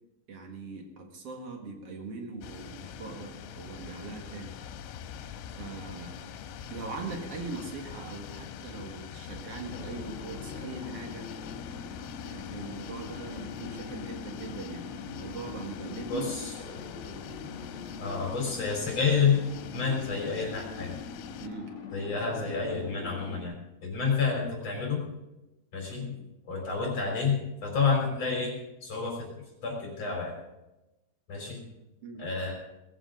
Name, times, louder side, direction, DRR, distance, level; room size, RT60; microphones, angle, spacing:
voice 1, 0.3-4.6 5.5-6.1 6.7-11.3 12.2-16.3 21.4-21.7 32.0-32.2, right 3 dB, 75° right, 2 dB, 1.4 m, -41 dB
sound 1, 2.4-21.5, left 8 dB, 80° left, 3.4 m, -44 dB
sound 2, 9.7-23.4, left 5 dB, 50° left, 1.5 m, -42 dB
voice 2, 16.1-16.5 18.0-19.4 19.7-21.0 21.9-23.6 23.8-25.0 25.7-26.1 26.5-27.4 27.6-29.3 29.6-30.4 31.3-31.6 32.2-32.5, left 5 dB, 35° left, -2 dB, 4.5 m, -29 dB
20.0 x 15.0 x 3.9 m, 0.97 s
omnidirectional pair, 5.9 m